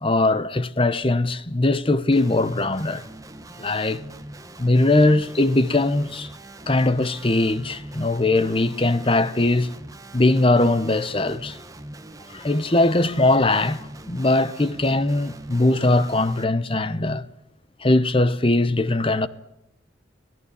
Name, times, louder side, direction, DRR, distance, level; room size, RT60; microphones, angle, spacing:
voice 1, 0.0-3.0 3.6-4.0 4.6-6.3 6.7-9.7 10.1-11.6 12.3-17.2 17.8-19.3, left 2 dB, 25° left, 0.9 m, -20 dB
Guitar, 2.1-16.4, right 1 dB, 15° right, 1.3 m, -42 dB
25.5 x 17.0 x 8.5 m
head